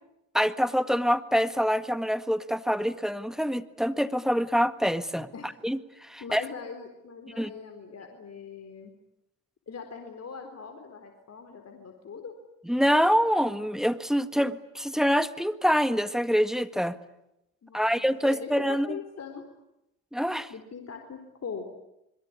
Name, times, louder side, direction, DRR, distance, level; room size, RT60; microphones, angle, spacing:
voice 1, 0.3-5.3 5.6-6.4 7.4-7.5 12.7-17.0 17.7-19.0 20.1-20.5, equal, ahead, 13 dB, 1.7 m, -25 dB
voice 2, 6.2-8.9 9.7-12.3 17.6-19.5 20.5-21.6, left 5 dB, 40° left, 5 dB, 4.2 m, -41 dB
26.0 x 22.5 x 9.7 m, 0.85 s
hypercardioid pair, 65°, 40 cm